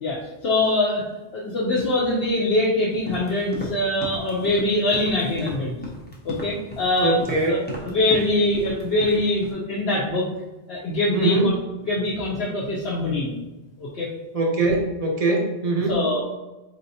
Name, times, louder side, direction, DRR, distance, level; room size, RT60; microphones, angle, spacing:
voice 1, 0.0-5.8 6.2-7.2 7.5-10.3 10.7-11.6 11.8-13.4 13.8-14.1 15.9-16.2, left 2 dB, 60° left, -5 dB, 0.9 m, -23 dB
sound 1, 2.9-9.5, left 1 dB, 10° left, 0.6 m, -35 dB
voice 2, 7.0-7.7 11.1-11.5 14.3-16.0, right 2 dB, 50° right, 0 dB, 0.4 m, -22 dB
4.3 x 3.4 x 2.7 m, 1.1 s
omnidirectional pair, 1.2 m